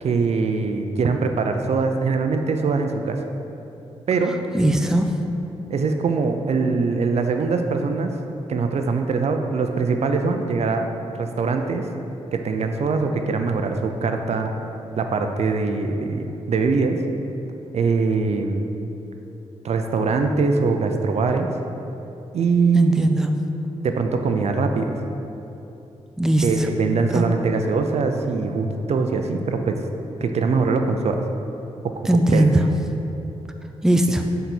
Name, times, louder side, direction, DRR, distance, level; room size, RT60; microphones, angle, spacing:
voice 1, 0.0-3.2 4.1-4.3 5.7-8.1 8.5-10.9 11.1-11.8 12.3-14.5 15.0-17.0 17.7-18.7 19.6-21.6 22.3-22.9 23.4-23.5 23.8-25.0 26.4-29.8 30.2-31.2 31.8-32.4, right 4 dB, 60° right, 5 dB, 0.5 m, -22 dB
voice 2, 4.5-5.1 22.7-23.3 26.2-26.5 27.1-27.2 32.1-32.6 33.8-34.2, right 1 dB, 5° right, 4 dB, 0.5 m, -18 dB
6.6 x 4.0 x 6.0 m, 2.9 s
cardioid pair, 85°, 12 cm